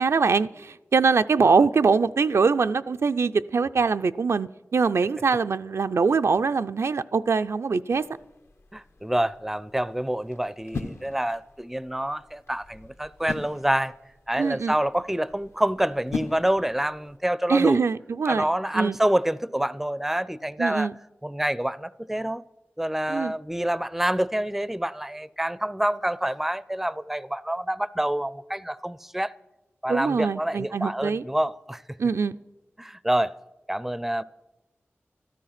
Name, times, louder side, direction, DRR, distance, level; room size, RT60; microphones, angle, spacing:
voice 1, 0.0-8.0 14.4-14.8 17.5-18.5 18.7-19.0 20.6-20.9 23.1-23.3 29.9-31.2 32.0-32.4, right 5 dB, 75° right, 0.4 m, -23 dB
sound 1, 7.9-17.2, left 4 dB, 70° left, 0.9 m, -41 dB
voice 2, 8.7-13.9 14.3-17.8 18.3-20.9 21.2-22.4 22.8-29.3 29.8-31.8 32.8-33.3 33.7-34.2, right 1 dB, 5° right, 0.4 m, -27 dB
13.0 x 12.5 x 5.8 m
wide cardioid pair, 55°, 5 cm